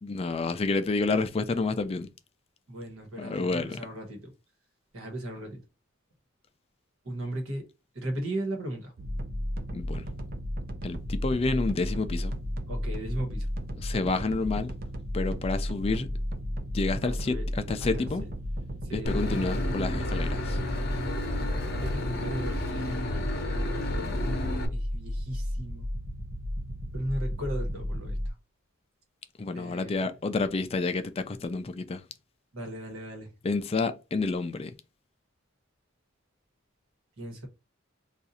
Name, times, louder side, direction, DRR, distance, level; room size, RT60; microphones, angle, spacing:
voice 1, 0.0-2.1 3.2-3.8 9.7-10.0 10.8-12.3 13.8-14.7 15.1-16.1 16.7-18.2 18.9-20.6 29.4-32.0 33.4-34.7, left 3 dB, 30° left, 0.3 m, -29 dB
voice 2, 2.7-4.3 4.9-5.6 7.0-7.7 7.9-8.9 12.7-13.5 17.0-17.5 17.8-18.3 18.8-19.2 21.8-24.4 24.7-25.9 26.9-28.3 29.5-30.0 32.5-33.3 37.2-37.5, right 1 dB, 85° right, 1.2 m, -37 dB
sound 1, 9.0-28.3, equal, 45° right, 0.5 m, -33 dB
Boat Water vehicle / Engine, 19.0-24.7, left 1 dB, 50° left, 0.7 m, -32 dB
2.6 x 2.4 x 4.0 m
head